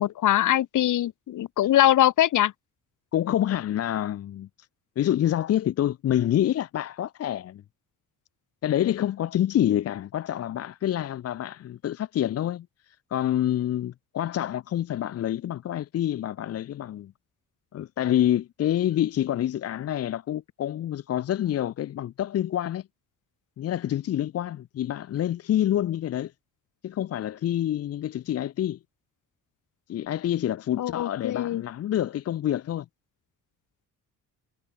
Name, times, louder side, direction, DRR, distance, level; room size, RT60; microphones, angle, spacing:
voice 1, 0.0-2.5 30.8-31.6, left 13 dB, 70° left, 1.9 m, -22 dB
voice 2, 3.1-4.5 5.0-7.6 8.6-17.1 17.7-22.9 23.6-26.3 26.8-28.8 29.9-32.9, left 11 dB, 50° left, 0.7 m, -27 dB
cardioid pair, 165°, 32 cm